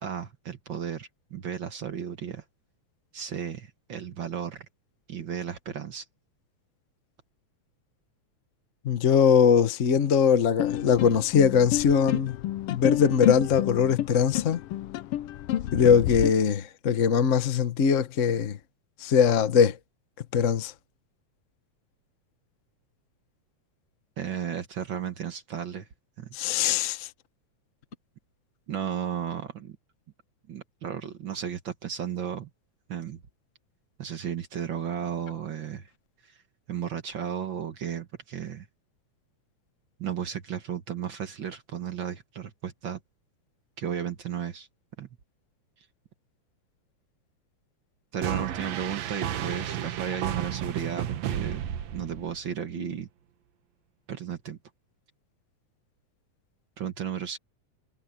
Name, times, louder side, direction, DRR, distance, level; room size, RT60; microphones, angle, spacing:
voice 1, 0.0-2.4 3.1-4.7 5.1-6.0 24.2-25.9 26.2-26.4 28.7-29.8 30.5-32.5 32.9-33.2 34.0-35.9 36.2-36.3 36.7-38.7 40.0-43.0 43.8-44.7 45.0-45.1 48.1-51.6 51.9-53.1 54.1-54.6 56.8-57.4, right 8 dB, 50° right, 1.6 m, -34 dB
voice 2, 8.8-12.4 12.7-14.6 15.7-18.6 19.0-19.7 20.3-20.7 26.3-27.1, left 7 dB, 60° left, 0.7 m, -21 dB
sound 1, 10.6-16.3, left 13 dB, 85° left, 1.2 m, -30 dB
sound 2, 48.2-52.5, right 10 dB, 70° right, 2.2 m, -32 dB
omnidirectional pair, 3.4 m